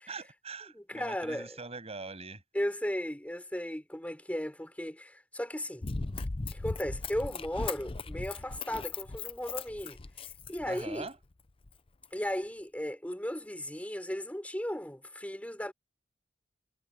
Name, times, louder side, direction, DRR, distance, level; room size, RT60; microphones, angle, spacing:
voice 1, 0.1-2.4 10.6-11.2, right 3 dB, 35° right, 7.3 m, -42 dB
voice 2, 0.7-1.6 2.5-5.8 6.5-10.0 10.5-11.1 12.1-15.7, equal, 10° left, 4.9 m, -36 dB
Run, 5.8-11.1 11.7-11.8, left 3 dB, 30° left, 0.6 m, -38 dB
head